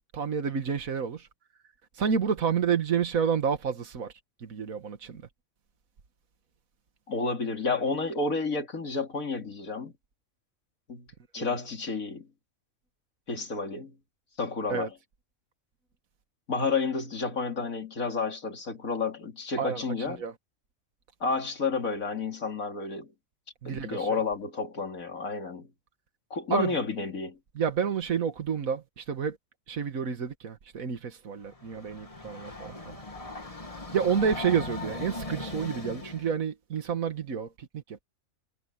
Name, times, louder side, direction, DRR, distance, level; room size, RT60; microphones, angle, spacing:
voice 1, 0.1-1.3 2.0-4.1 4.4-5.2 11.4-11.5 14.7-14.9 19.6-20.3 23.6-24.2 26.5-26.7 27.6-29.4 29.7-33.0 33.9-38.0, right 7 dB, 80° right, 2.0 m, -29 dB
voice 2, 7.1-9.9 10.9-11.1 11.3-12.3 13.3-13.9 14.4-14.9 16.5-20.2 21.2-23.1 23.6-25.7 26.3-27.4, left 4 dB, 80° left, 3.2 m, -31 dB
Train, 31.4-36.3, left 2 dB, 25° left, 2.2 m, -39 dB
omnidirectional pair, 1.4 m